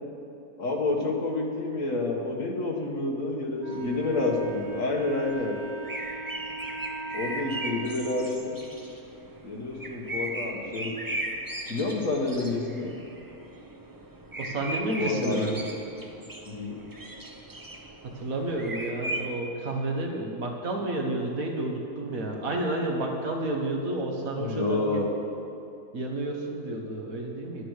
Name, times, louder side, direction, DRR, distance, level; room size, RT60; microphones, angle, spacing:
voice 1, 0.6-5.6 7.1-8.6 9.4-10.9 11.7-12.9 15.0-15.5 16.5-16.8 24.4-25.1, left 2 dB, 60° left, 0 dB, 1.9 m, -29 dB
Wind instrument woodwind instrument, 3.6-7.9, right 3 dB, 15° left, 1.7 m, -39 dB
sound 1, 3.7-19.3, right 1 dB, 25° right, 0.4 m, -38 dB
voice 2, 14.4-15.5 18.0-25.0 25.9-27.7, right 2 dB, 65° right, 1 dB, 1.7 m, -30 dB
11.0 x 9.4 x 6.6 m, 2.8 s
omnidirectional pair, 1.6 m